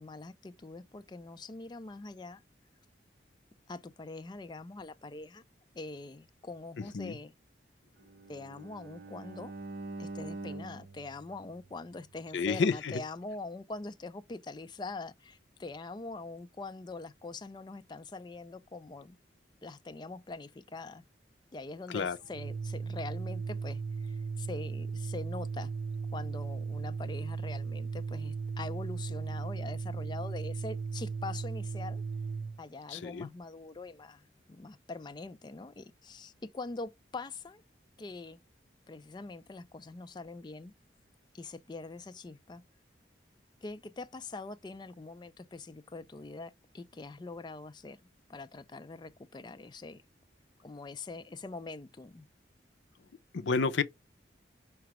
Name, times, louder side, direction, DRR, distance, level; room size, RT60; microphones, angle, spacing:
voice 1, 0.0-2.4 3.7-5.4 5.7-7.3 8.3-9.5 10.0-19.2 19.6-21.1 21.5-25.7 26.1-32.0 32.6-37.6 38.0-38.4 38.9-40.7 41.3-42.6 43.6-48.0 48.3-50.0 50.6-52.3, left 3 dB, 25° left, 0.3 m, -43 dB
Bowed string instrument, 8.0-12.2, right 2 dB, 55° right, 0.8 m, -45 dB
voice 2, 12.3-13.0 21.9-22.2 32.9-33.3 53.3-53.8, left 4 dB, 80° left, 0.5 m, -30 dB
Organ, 22.3-32.6, right 5 dB, 85° right, 0.4 m, -36 dB
4.9 x 2.3 x 2.9 m
head